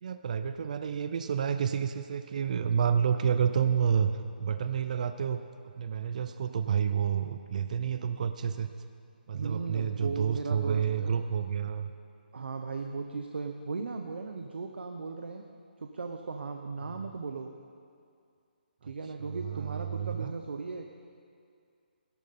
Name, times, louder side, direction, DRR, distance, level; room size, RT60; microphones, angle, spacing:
voice 1, 0.0-4.1 4.4-5.4 5.7-8.7 9.3-11.9 16.8-17.0 19.2-20.3, right 7 dB, 45° right, 10 dB, 0.5 m, -29 dB
voice 2, 9.3-11.2 12.3-15.4 15.8-17.5 18.8-20.8, right 4 dB, 80° right, 4 dB, 0.9 m, -37 dB
17.0 x 12.0 x 4.2 m, 2.4 s
hypercardioid pair, 165°, 6 cm